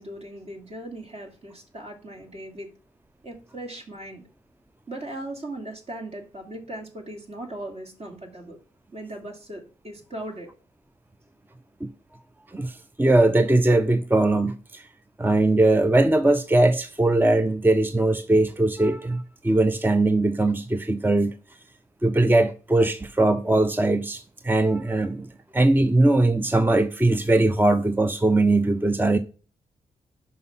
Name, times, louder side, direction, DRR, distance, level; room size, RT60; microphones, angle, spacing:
voice 1, 0.0-2.7 3.2-4.2 4.9-8.6 8.9-10.5, right 1 dB, 50° right, 2.7 m, -38 dB
voice 2, 12.5-14.9 15.2-21.3 22.0-25.3 25.5-29.2, right 2 dB, 15° right, 0.6 m, -20 dB
5.5 x 5.3 x 5.6 m
supercardioid pair, 45°, 14 cm